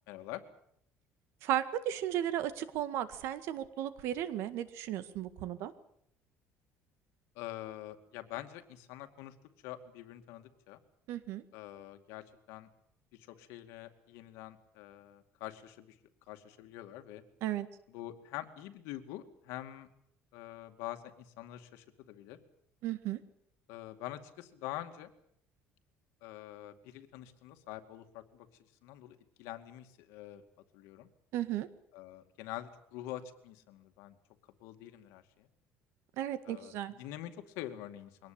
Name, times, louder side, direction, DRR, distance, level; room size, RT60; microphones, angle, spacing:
voice 1, 0.1-0.4 7.4-9.3 9.6-10.8 11.5-12.7 13.1-16.0 16.3-17.2 17.9-19.9 20.3-22.4 23.7-25.1 26.2-28.5 28.8-30.4 30.7-31.1 31.9-34.2 34.6-35.5 36.4-38.3, left 14 dB, 85° left, 7 dB, 2.3 m, -45 dB
voice 2, 1.4-5.7 11.1-11.4 17.4-17.7 22.8-23.2 31.3-31.7 36.2-36.9, right 12 dB, 65° right, 13 dB, 1.8 m, -35 dB
23.0 x 18.5 x 8.9 m, 0.70 s
cardioid pair, 165°, 5 cm